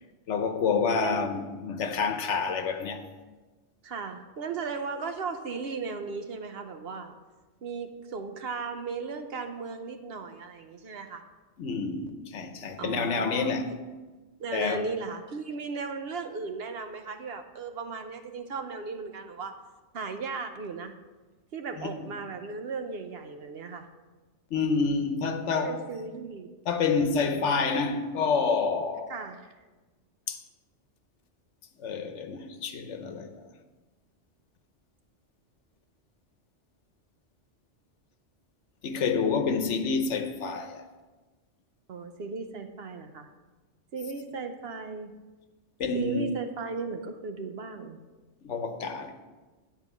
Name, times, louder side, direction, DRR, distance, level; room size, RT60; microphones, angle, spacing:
voice 1, 0.3-3.0 11.6-13.8 14.5-14.8 21.8-21.9 24.5-25.8 26.7-29.1 30.3-30.4 31.8-33.5 38.8-40.8 45.8-46.3 48.4-49.1, left 5 dB, 75° left, 1.1 m, -28 dB
voice 2, 1.0-1.3 3.8-7.1 7.6-11.2 12.8-13.5 14.4-19.5 19.9-20.9 21.5-23.9 25.6-26.5 29.1-29.5 41.9-43.3 43.9-45.1 45.9-48.0, right 4 dB, 60° right, 0.9 m, -36 dB
9.9 x 4.5 x 7.1 m
omnidirectional pair, 1.2 m